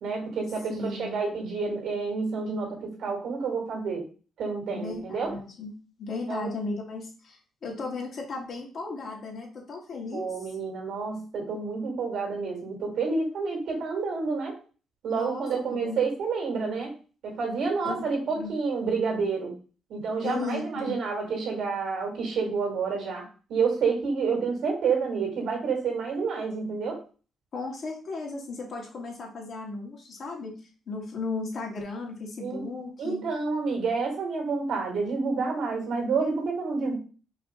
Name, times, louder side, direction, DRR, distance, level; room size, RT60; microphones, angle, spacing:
voice 1, 0.0-4.1 4.4-5.3 6.3-6.5 10.1-14.6 15.0-16.9 17.2-19.5 19.9-27.0 32.4-32.6 33.0-37.0, right 4 dB, 75° right, 0 dB, 2.4 m, -29 dB
voice 2, 0.7-1.2 4.7-5.7 6.0-10.3 15.1-16.0 17.8-18.0 18.3-18.5 20.2-20.9 27.5-30.5 30.9-33.2, left 3 dB, 55° left, -1 dB, 1.9 m, -35 dB
5.3 x 2.7 x 3.6 m, 0.36 s
cardioid pair, 90°, 0 cm